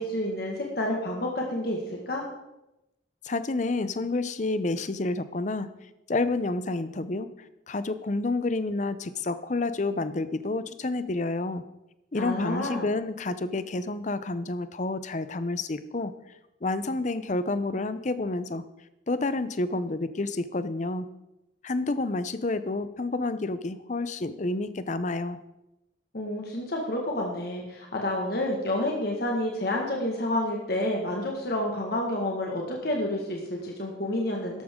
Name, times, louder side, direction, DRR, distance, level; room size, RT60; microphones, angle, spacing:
voice 1, 0.0-2.2 12.1-12.8 26.1-34.6, left 1 dB, 55° left, -1 dB, 1.7 m, -29 dB
voice 2, 3.2-5.7 6.1-7.3 7.7-11.6 12.1-16.1 16.6-18.6 19.1-21.1 21.6-25.4, left 2 dB, 40° left, 13 dB, 0.6 m, -29 dB
13.5 x 11.5 x 3.7 m, 0.93 s
head